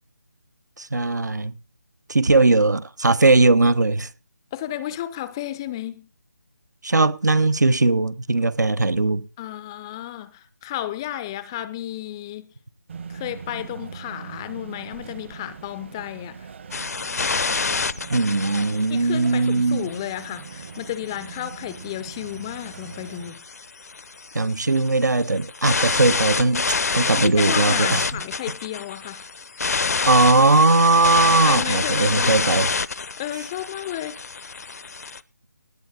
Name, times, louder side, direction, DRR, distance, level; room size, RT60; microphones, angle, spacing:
voice 1, 0.8-1.6 2.1-4.1 6.8-9.3 18.1-19.9 24.3-28.0 30.0-32.7, right 3 dB, 75° right, 1.1 m, -19 dB
voice 2, 4.5-6.1 9.4-12.5 13.1-16.5 18.9-23.4 27.1-29.3 31.3-32.4 33.2-34.2, left 12 dB, 15° left, 0.5 m, -32 dB
sound 1, 12.9-23.3, right 6 dB, 40° right, 1.2 m, -40 dB
sound 2, 16.7-35.2, left 4 dB, 60° left, 0.7 m, -28 dB
18.0 x 8.4 x 3.8 m
figure-of-eight pair, 160°, 9 cm